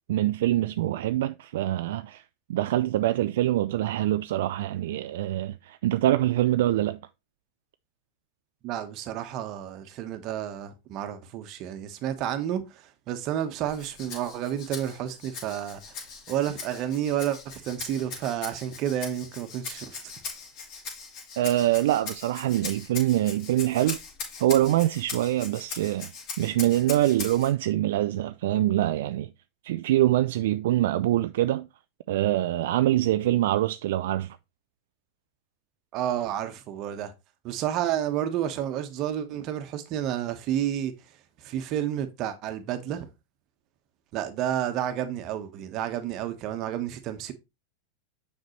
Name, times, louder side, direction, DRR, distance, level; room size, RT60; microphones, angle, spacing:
voice 1, 0.1-2.2 2.5-7.0 21.4-24.0 24.4-26.1 26.4-29.3 29.6-31.7 32.1-34.4, right 14 dB, 70° right, 0.3 m, -24 dB
voice 2, 8.6-15.9 16.3-20.1 35.9-37.1 37.4-40.9 41.4-43.1 44.1-47.3, right 11 dB, 45° right, 1.2 m, -30 dB
Rattle (instrument), 13.7-27.5, left 5 dB, 50° left, 3.0 m, -40 dB
6.5 x 5.4 x 3.2 m
hypercardioid pair, 110°, 0 cm